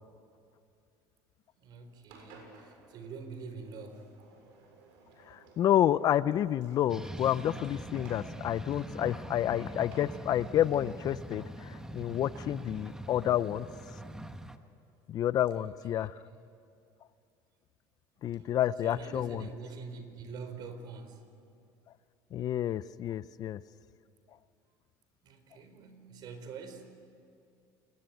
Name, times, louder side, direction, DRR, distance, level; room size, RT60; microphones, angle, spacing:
voice 1, 1.6-4.1 15.5-16.4 18.3-21.2 25.2-26.9, right 4 dB, 55° right, 8 dB, 4.1 m, -45 dB
Engine, 2.1-14.1, right 3 dB, 80° right, 7.1 m, -57 dB
voice 2, 5.3-13.7 15.1-16.2 18.2-19.5 22.3-23.6, left 11 dB, 45° left, 17 dB, 0.6 m, -29 dB
sound 1, 6.9-14.6, right 1 dB, 5° right, 1.3 m, -43 dB
28.5 x 21.0 x 9.3 m, 2.5 s
supercardioid pair, 115°, 9 cm